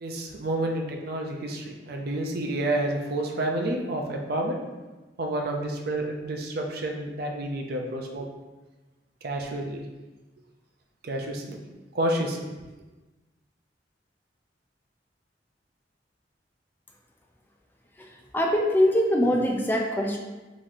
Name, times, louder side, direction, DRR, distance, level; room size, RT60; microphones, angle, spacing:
voice 1, 0.0-4.6 5.2-8.3 9.2-9.8 11.0-11.6 11.9-12.5, right 1 dB, 60° right, 2 dB, 0.5 m, -29 dB
voice 2, 18.0-20.2, equal, 10° left, 0 dB, 0.3 m, -23 dB
3.0 x 2.6 x 4.0 m, 1.2 s
head